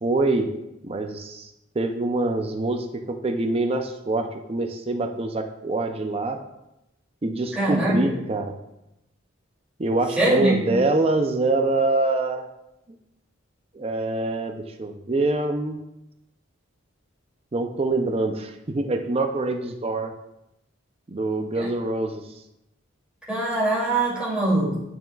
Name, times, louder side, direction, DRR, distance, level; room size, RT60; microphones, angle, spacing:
voice 1, 0.0-0.5 0.8-1.5 1.8-6.4 7.2-8.6 9.8-12.5 13.7-15.8 17.5-20.1 21.1-22.2, right 2 dB, 30° right, 5 dB, 0.5 m, -25 dB
voice 2, 7.5-8.2 10.1-10.8 21.5-21.7 23.3-24.8, right 1 dB, 5° right, -8 dB, 2.6 m, -23 dB
8.8 x 6.4 x 2.3 m, 0.89 s
head